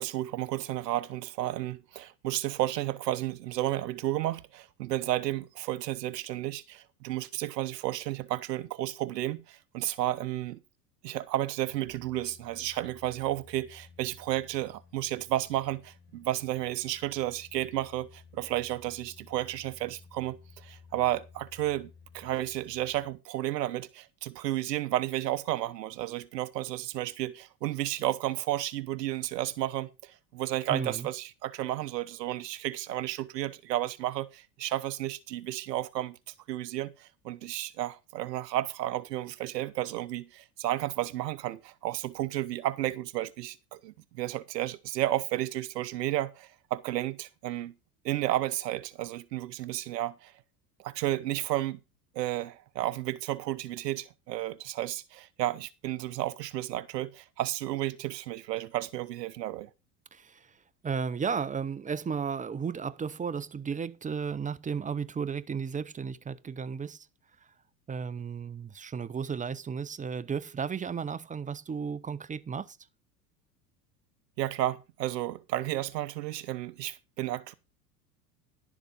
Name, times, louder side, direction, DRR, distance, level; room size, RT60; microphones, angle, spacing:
voice 1, 0.0-10.6 11.0-47.7 48.0-50.3 50.8-51.8 52.1-59.7 74.4-77.5, right 14 dB, 75° right, 1.0 m, -32 dB
sound 1, 11.6-23.2 23.6-23.7, left 5 dB, 20° left, 5.3 m, -55 dB
voice 2, 30.7-31.1 60.1-60.4 60.8-67.1 67.9-72.8, right 6 dB, 15° right, 0.7 m, -34 dB
11.5 x 7.2 x 5.4 m
hypercardioid pair, 75°, 49 cm